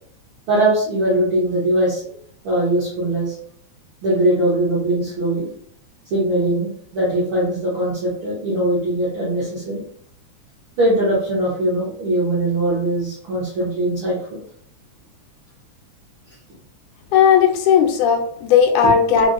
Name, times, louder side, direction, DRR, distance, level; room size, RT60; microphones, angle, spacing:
voice 1, 0.5-2.0 2.4-3.3 4.0-5.5 6.1-9.8 10.8-14.2 18.8-18.9, right 1 dB, 70° right, -7 dB, 1.3 m, -20 dB
voice 2, 17.1-19.3, left 7 dB, 85° left, 3 dB, 2.0 m, -15 dB
5.1 x 2.1 x 2.4 m, 0.62 s
omnidirectional pair, 3.4 m